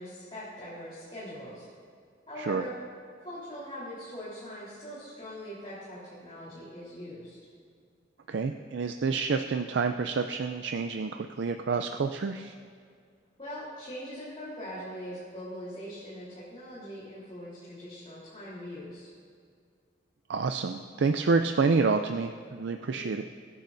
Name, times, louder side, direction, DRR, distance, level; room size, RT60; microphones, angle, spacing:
voice 1, 0.0-1.7 2.3-2.8 3.2-7.4 13.4-19.1 22.9-23.1, equal, 30° left, -10 dB, 3.6 m, -42 dB
voice 2, 8.3-12.5 20.3-23.2, right 4 dB, 70° right, 7 dB, 0.4 m, -28 dB
22.5 x 10.5 x 2.6 m, 2.2 s
head